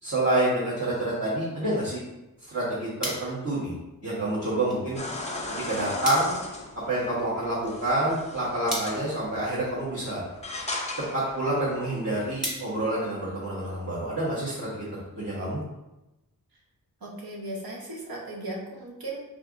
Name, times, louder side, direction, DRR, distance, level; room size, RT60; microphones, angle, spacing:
voice 1, 0.0-2.0 2.5-3.7 4.0-5.0 5.5-6.4 6.9-10.2 11.0-15.6, right 1 dB, 45° right, -9 dB, 1.3 m, -28 dB
sound 1, 2.3-13.7, equal, ahead, 1.4 m, -41 dB
sound 2, 5.0-12.4, left 2 dB, 20° left, 0.5 m, -38 dB
voice 2, 17.0-19.2, right 1 dB, 75° right, -2 dB, 1.0 m, -37 dB
4.5 x 3.6 x 2.5 m, 0.98 s
wide cardioid pair, 80°, 36 cm